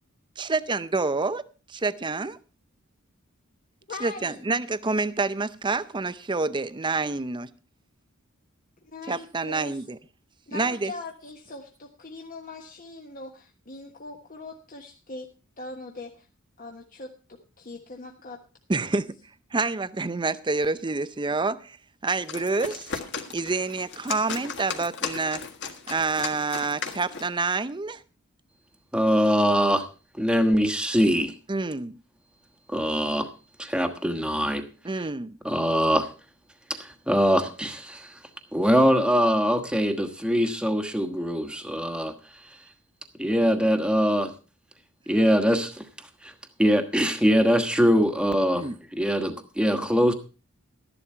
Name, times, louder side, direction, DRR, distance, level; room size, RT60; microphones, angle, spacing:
voice 1, 0.4-1.4 1.7-2.4 4.0-7.5 9.0-10.0 10.5-10.9 18.7-19.1 19.5-21.8 22.0-22.8 23.3-25.4 25.9-28.0 31.5-32.0 34.8-35.4 48.5-48.8, right 3 dB, 20° right, 0.6 m, -27 dB
voice 2, 3.9-4.4 8.9-9.8 10.5-13.3 13.7-15.3 15.6-16.3 16.6-17.1 17.6-18.4 18.7-18.9, left 2 dB, 40° left, 1.3 m, -40 dB
sound 1, 22.1-27.4, left 5 dB, 60° left, 1.6 m, -36 dB
voice 3, 28.9-29.8 30.2-31.3 32.7-33.3 33.6-34.6 35.4-36.1 36.7-38.1 38.5-42.1 43.2-44.3 45.1-45.8 46.2-46.3 46.6-48.7 48.9-50.1, equal, 5° right, 1.3 m, -22 dB
13.0 x 11.0 x 4.4 m
head